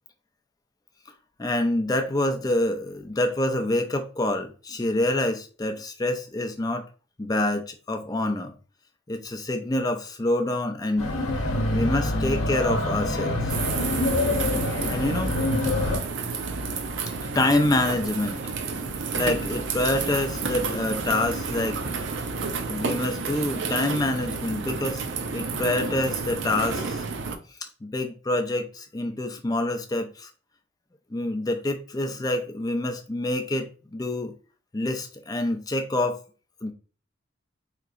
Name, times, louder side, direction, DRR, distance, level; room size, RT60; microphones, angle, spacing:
voice 1, 1.4-6.8 7.2-8.5 9.1-11.3 11.7-13.5 14.9-15.4 17.0-18.5 19.2-21.8 22.7-25.0 25.3-27.0 27.6-30.3 31.1-34.3 34.7-36.2 36.6-36.7, left 1 dB, 20° left, 0.4 m, -26 dB
sound 1, 11.0-16.0, left 1 dB, 90° left, 0.8 m, -26 dB
sound 2, 13.5-27.4, right 4 dB, 65° right, 0.5 m, -30 dB
4.6 x 2.9 x 2.5 m
head